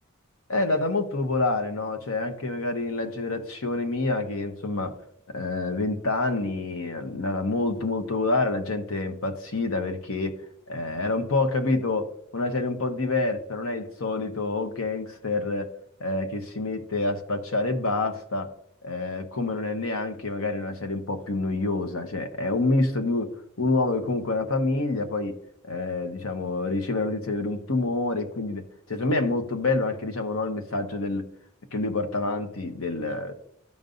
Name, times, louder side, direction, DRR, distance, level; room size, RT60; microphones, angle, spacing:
voice 1, 0.5-4.9 5.3-10.4 10.7-15.7 16.0-18.5 18.8-23.3 23.6-25.4 25.6-28.6 28.9-31.2 31.7-33.3, left 2 dB, 80° left, 6 dB, 1.1 m, -27 dB
14.0 x 5.3 x 2.6 m, 0.70 s
head